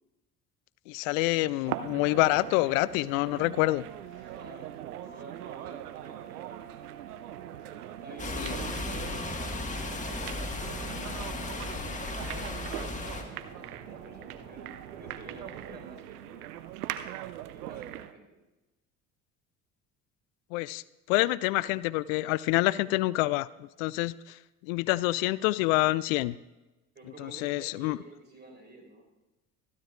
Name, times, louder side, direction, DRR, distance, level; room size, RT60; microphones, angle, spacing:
voice 1, 0.9-3.8 8.4-8.5 20.5-20.8 21.1-23.5 23.8-26.4 27.2-28.0, left 19 dB, 60° left, 19 dB, 0.5 m, -27 dB
sound 1, 1.7-18.2, right 13 dB, 75° right, 0.7 m, -41 dB
sound 2, 3.3-15.7, right 5 dB, 40° right, 4.3 m, -50 dB
voice 2, 4.3-6.8 7.9-9.2 9.6-14.7 15.0-16.5 17.4-18.4 26.9-29.0, right 2 dB, 20° right, 2 dB, 4.7 m, -50 dB
sound 3, 8.2-13.2, left 3 dB, 15° left, 1.6 m, -35 dB
24.5 x 9.6 x 2.5 m, 1.1 s
figure-of-eight pair, 60°, 46 cm